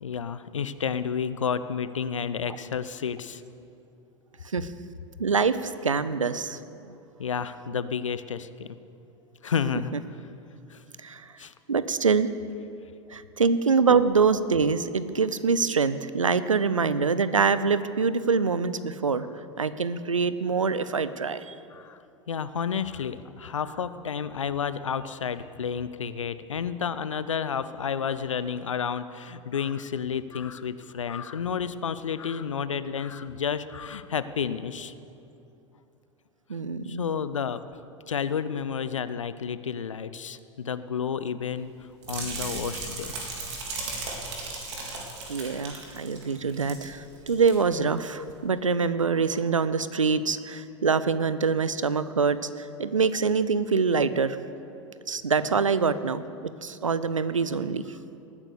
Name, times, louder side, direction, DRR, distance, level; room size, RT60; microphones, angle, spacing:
voice 1, 0.0-3.4 7.2-8.8 9.4-9.9 10.7-10.8 11.4-11.5 21.7-22.0 22.3-34.9 36.8-37.6 38.1-41.7 42.1-43.1 43.4-43.6 55.4-55.5, left 7 dB, 75° left, 14 dB, 0.6 m, -31 dB
voice 2, 5.2-6.6 11.0-11.2 11.7-12.3 13.1-19.3 19.6-21.6 36.5-37.1 45.3-54.4 55.1-57.8, right 5 dB, 80° right, 14 dB, 0.6 m, -25 dB
sound 1, 42.0-46.9 47.1-47.5 48.0-48.1, right 3 dB, 60° right, 3.6 m, -36 dB
19.0 x 9.9 x 6.7 m, 2.8 s
figure-of-eight pair, 85°, 16 cm